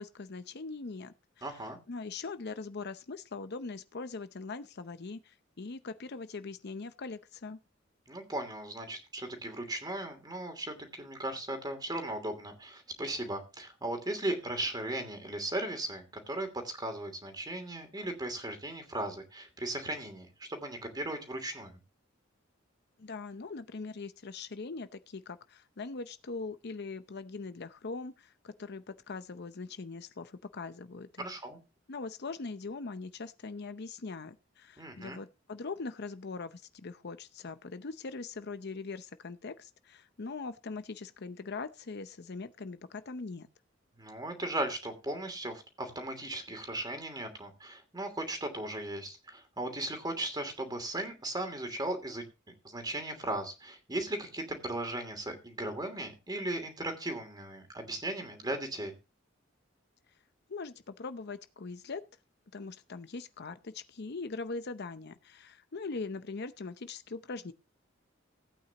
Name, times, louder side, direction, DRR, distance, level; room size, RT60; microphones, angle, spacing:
voice 1, 0.0-1.5 1.9-7.6 23.0-31.3 31.9-43.5 60.5-62.0 62.5-67.5, left 4 dB, 55° left, 0.7 m, -41 dB
voice 2, 1.4-1.8 8.1-21.8 31.2-31.6 34.8-35.2 44.0-52.2 52.6-58.9, right 1 dB, 20° right, 2.8 m, -37 dB
17.0 x 8.9 x 2.9 m
head